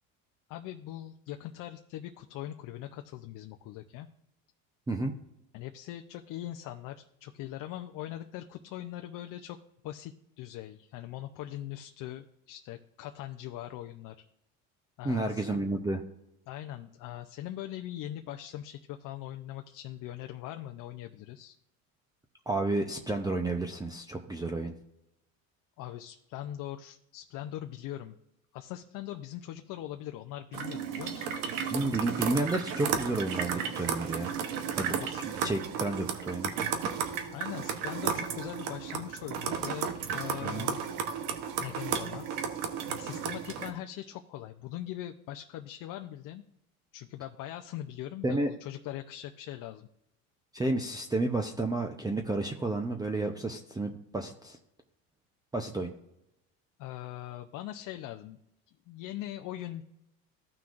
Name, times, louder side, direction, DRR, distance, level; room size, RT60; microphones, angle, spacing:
voice 1, 0.5-4.1 5.5-9.6 9.8-14.2 15.0-15.4 16.5-21.5 25.8-28.2 28.5-31.4 35.0-35.2 36.9-37.1 37.3-40.9 41.6-42.3 42.9-46.4 46.9-49.9 56.8-58.4 58.7-59.8, left 13 dB, 55° left, 6 dB, 0.6 m, -41 dB
voice 2, 15.0-16.0 22.5-24.7 31.7-34.3 34.8-35.0 35.2-36.5 40.4-40.7 48.2-48.5 50.5-54.6 55.5-55.9, right 2 dB, 10° right, 4 dB, 0.6 m, -31 dB
sound 1, 30.5-43.7, right 7 dB, 85° right, 1.0 m, -34 dB
15.0 x 5.9 x 2.5 m, 0.85 s
supercardioid pair, 105°, 38 cm